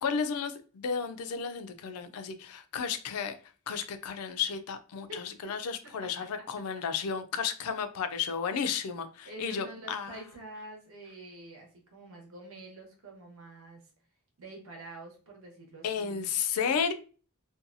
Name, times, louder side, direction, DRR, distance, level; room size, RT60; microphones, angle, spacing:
voice 1, 0.0-3.4 3.7-10.2 15.8-16.9, left 6 dB, 75° left, 9 dB, 0.4 m, -33 dB
voice 2, 5.1-5.5 5.8-5.9 9.2-13.8 14.4-16.3, right 1 dB, 65° right, 0 dB, 1.0 m, -47 dB
2.6 x 2.2 x 2.6 m, 0.37 s
head